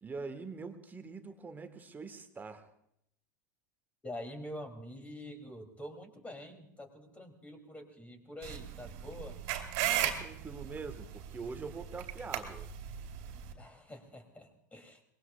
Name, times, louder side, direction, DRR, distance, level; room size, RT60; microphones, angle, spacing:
voice 1, 0.0-2.7 10.0-12.7, right 4 dB, 20° right, 8 dB, 1.5 m, -44 dB
voice 2, 4.0-9.4 13.6-15.1, left 1 dB, 15° left, 5 dB, 3.0 m, -46 dB
sound 1, 8.4-13.5, right 11 dB, 55° right, 2.4 m, -36 dB
24.0 x 21.0 x 2.4 m, 0.75 s
hypercardioid pair, 85°, 10 cm